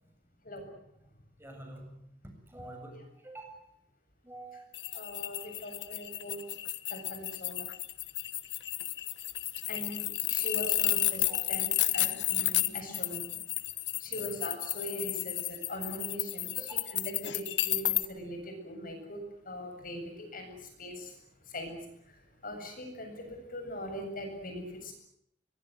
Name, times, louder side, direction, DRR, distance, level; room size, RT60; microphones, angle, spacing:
voice 1, 1.4-2.1 2.5-3.7 4.2-5.0 11.2-11.8 14.1-14.4 16.6-17.0, right 2 dB, 15° right, 3 dB, 7.4 m, -48 dB
sound 1, 4.7-18.0, left 15 dB, 80° left, 1.3 m, -32 dB
voice 2, 4.9-6.4 6.9-7.6 9.7-13.2 14.0-20.5 20.8-21.1 21.5-21.8 22.4-24.9, equal, 50° left, 5 dB, 7.7 m, -41 dB
23.0 x 23.0 x 9.4 m, 0.72 s
head